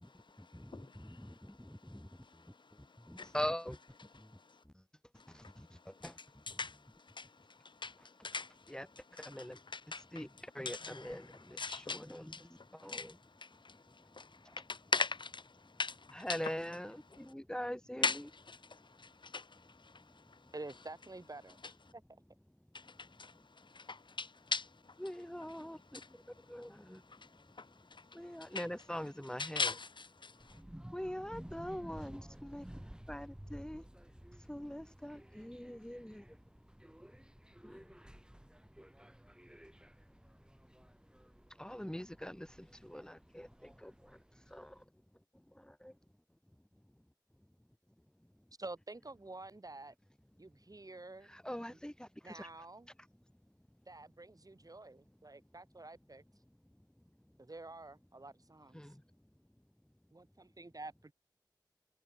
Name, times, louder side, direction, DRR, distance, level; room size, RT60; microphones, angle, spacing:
voice 1, 0.4-1.4 2.2-2.3 3.1-3.3 5.4-5.5 6.0-6.1 6.5-6.8 7.1-8.8 9.2-9.5 9.7-10.2 10.7-11.2 11.6-16.4 18.0-20.4 22.7-24.7 25.9-26.1 27.1-27.2 27.6-28.6 29.4-30.6, left 4 dB, 90° left, 2.1 m, -41 dB
voice 2, 3.3-3.7 8.7-8.8 9.3-9.5 10.1-10.3 10.6-11.2 11.9-12.2 12.8-13.0 16.1-17.0 17.3-18.1 25.0-25.8 26.5-26.7 28.2-29.7 30.9-32.1 32.5-32.6 33.1-33.8 34.5-36.1 41.6-42.3 42.9-43.0 51.5-51.9, equal, 10° left, 1.5 m, -41 dB
voice 3, 20.5-22.0 48.6-49.9 50.4-51.4 51.7-51.8 52.2-52.9 53.9-56.2 57.4-58.8 60.1-61.1, right 2 dB, 50° right, 4.5 m, -49 dB
sound 1, 30.4-44.8, equal, 10° right, 4.4 m, -54 dB
wide cardioid pair, 45°, 8 cm